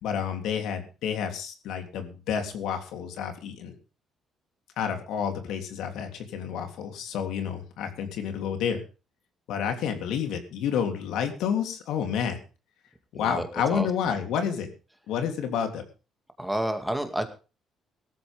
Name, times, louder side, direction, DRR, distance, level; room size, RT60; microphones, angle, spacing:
voice 1, 0.0-3.7 4.8-8.8 9.5-12.4 13.1-14.7 15.1-15.8, left 8 dB, 85° left, 6 dB, 3.2 m, -29 dB
voice 2, 13.1-13.9 16.4-17.3, right 1 dB, 5° right, 6 dB, 2.3 m, -30 dB
18.0 x 14.0 x 3.6 m, 0.33 s
cardioid pair, 130°, 0 cm